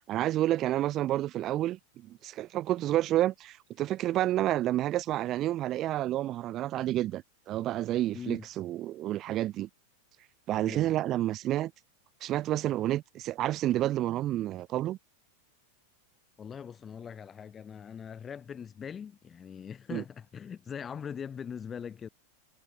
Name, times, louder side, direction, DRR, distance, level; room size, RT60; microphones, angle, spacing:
voice 1, 0.1-1.8 2.1-9.7 10.5-11.7 12.2-15.0 19.9-20.0, right 14 dB, 35° right, 0.4 m, -29 dB
voice 2, 8.1-8.5 10.6-10.9 16.4-22.1, left 7 dB, 20° left, 0.6 m, -41 dB
figure-of-eight pair, 90°, 0 cm